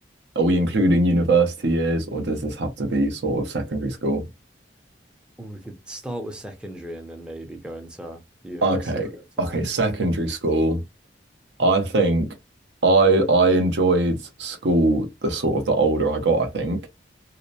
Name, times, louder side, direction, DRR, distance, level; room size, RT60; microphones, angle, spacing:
voice 1, 0.4-4.3 8.6-9.1 9.4-10.8 11.6-12.3 12.8-16.9, right 2 dB, 70° right, 0.7 m, -21 dB
voice 2, 5.4-9.6, right 1 dB, 5° right, 0.5 m, -37 dB
2.8 x 2.0 x 2.4 m
head